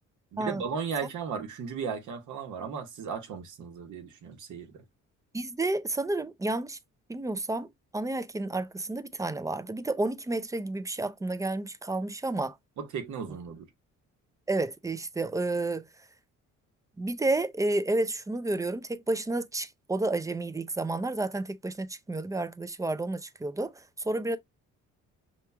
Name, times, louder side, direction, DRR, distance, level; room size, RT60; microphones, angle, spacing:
voice 1, 0.3-4.8 12.8-13.7, right 6 dB, 75° right, 1.2 m, -36 dB
voice 2, 5.3-6.8 7.1-7.7 7.9-12.6 14.5-15.9 17.0-24.4, right 2 dB, 10° right, 0.4 m, -30 dB
5.7 x 3.0 x 2.2 m
cardioid pair, 90°, 30 cm